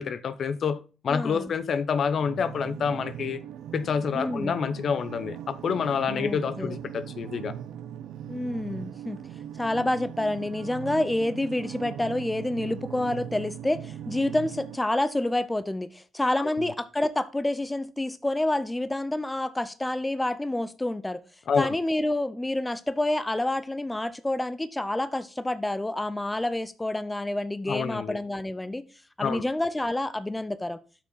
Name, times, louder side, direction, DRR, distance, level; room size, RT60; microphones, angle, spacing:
voice 1, 0.0-3.4 3.7-7.5 16.4-16.5 21.5-21.8 27.7-28.2 29.2-29.5, left 6 dB, 55° left, 0.7 m, -28 dB
voice 2, 1.1-1.5 4.1-4.6 6.1-6.8 8.3-9.2 9.6-21.2 21.6-28.9 29.2-30.8, left 1 dB, 10° left, 0.6 m, -28 dB
sound 1, 2.2-14.8, right 10 dB, 80° right, 0.7 m, -39 dB
8.3 x 6.0 x 3.9 m
cardioid pair, 90°, 0 cm